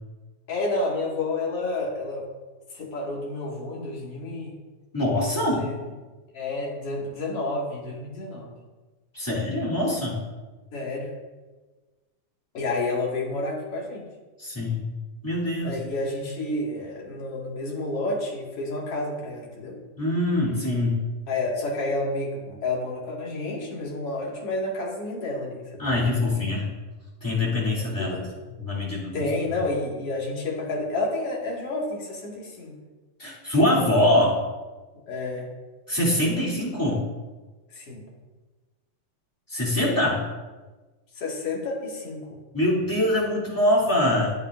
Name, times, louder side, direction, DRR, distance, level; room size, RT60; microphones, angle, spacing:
voice 1, 0.5-2.3 2.7-4.5 5.2-5.9 6.3-8.5 10.7-11.1 12.5-14.1 15.6-19.8 21.3-26.1 28.0-28.3 29.1-32.7 35.1-35.5 37.7-38.0 41.2-42.2, left 2 dB, 50° left, -3 dB, 2.9 m, -30 dB
voice 2, 4.9-5.7 9.1-10.2 14.4-14.9 15.2-15.8 20.0-21.0 25.8-26.7 27.2-28.2 28.6-29.2 33.2-34.4 35.9-37.0 39.5-40.2 42.5-44.3, left 1 dB, 5° left, -6 dB, 2.3 m, -23 dB
14.5 x 8.4 x 2.6 m, 1.2 s
omnidirectional pair, 3.7 m